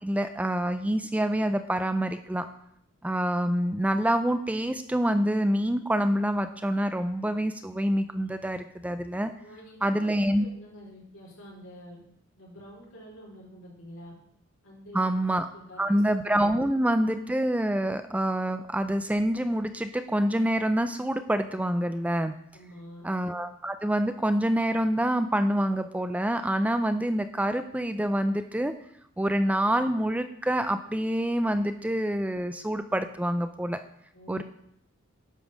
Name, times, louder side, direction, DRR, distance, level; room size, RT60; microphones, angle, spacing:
voice 1, 0.0-2.5 3.0-9.3 9.8-10.5 14.9-15.5 15.8-22.3 23.0-28.7 29.2-33.8 34.3-34.4, right 1 dB, 5° right, 9 dB, 0.4 m, -26 dB
voice 2, 9.4-12.0 12.4-14.1 14.6-15.1 15.5-15.9 22.5-23.1 34.1-34.4, equal, 70° left, -4 dB, 4.6 m, -47 dB
11.0 x 5.3 x 6.3 m, 0.72 s
head